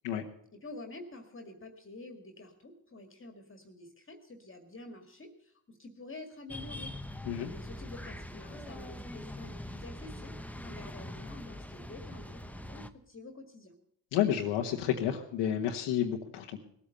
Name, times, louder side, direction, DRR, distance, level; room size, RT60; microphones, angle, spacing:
voice 1, 0.5-6.9 7.4-13.8, left 2 dB, 30° left, 5 dB, 2.0 m, -48 dB
sound 1, 6.5-12.9, left 1 dB, 5° left, 0.9 m, -43 dB
voice 2, 14.1-16.6, left 10 dB, 85° left, 1 dB, 1.3 m, -30 dB
18.0 x 8.6 x 6.6 m, 0.72 s
supercardioid pair, 75°, 43 cm